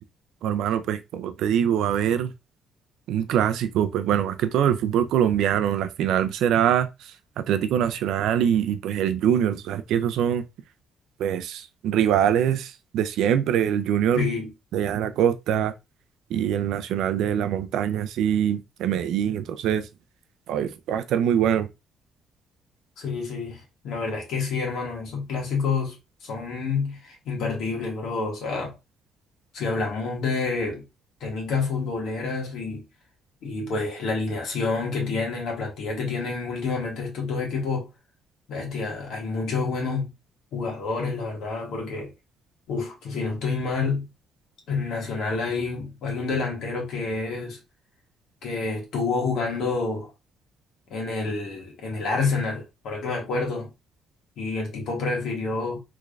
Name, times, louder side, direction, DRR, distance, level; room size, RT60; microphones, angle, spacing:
voice 1, 0.4-2.3 3.1-10.4 11.2-14.2 14.7-15.7 16.3-19.9 20.5-21.7, right 9 dB, 80° right, 0.4 m, -23 dB
voice 2, 14.2-14.5 23.0-26.0 26.2-28.7 29.5-30.8 31.2-32.8 33.4-37.9 38.5-40.1 40.5-42.1 42.7-44.1 44.7-47.6 48.4-50.1 50.9-53.7 54.4-55.8, left 4 dB, 70° left, 1.5 m, -28 dB
3.5 x 3.2 x 2.4 m
cardioid pair, 145°, 0 cm